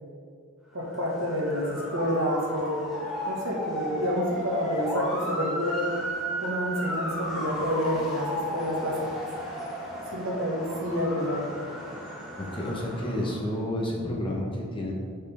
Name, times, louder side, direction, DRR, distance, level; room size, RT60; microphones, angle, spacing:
voice 1, 0.7-2.8 3.3-5.8 6.4-9.0 10.1-11.5, equal, 60° right, -2 dB, 1.7 m, -28 dB
Motor vehicle (road) / Siren, 0.8-13.5, equal, ahead, 1.7 m, -34 dB
voice 2, 12.4-14.9, left 1 dB, 25° left, -2 dB, 1.2 m, -30 dB
11.0 x 5.5 x 3.6 m, 2.3 s
head